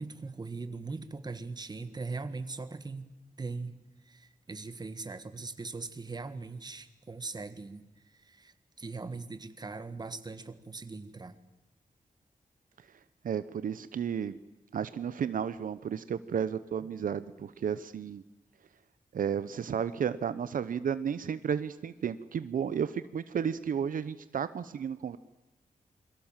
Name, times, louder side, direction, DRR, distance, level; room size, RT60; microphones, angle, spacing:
voice 1, 0.0-3.1 3.4-3.8 4.1-7.8 8.1-11.4, right 3 dB, 30° right, 11 dB, 1.6 m, -40 dB
voice 2, 13.2-14.4 14.7-18.2 19.1-25.2, right 7 dB, 75° right, 14 dB, 0.8 m, -33 dB
28.0 x 23.0 x 7.4 m, 0.98 s
wide cardioid pair, 130°, 14 cm